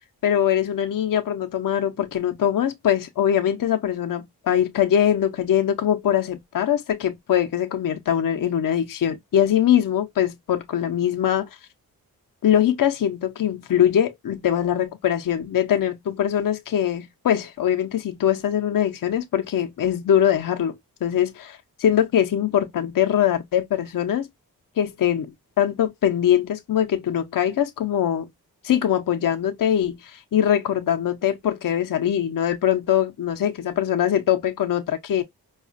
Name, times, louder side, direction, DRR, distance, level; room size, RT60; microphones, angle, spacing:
voice 1, 0.2-11.5 12.4-20.7 21.0-24.3 24.8-25.3 25.6-28.3 28.6-35.2, left 10 dB, 55° left, 0.7 m, -22 dB
4.7 x 2.4 x 2.5 m
supercardioid pair, 50°, 41 cm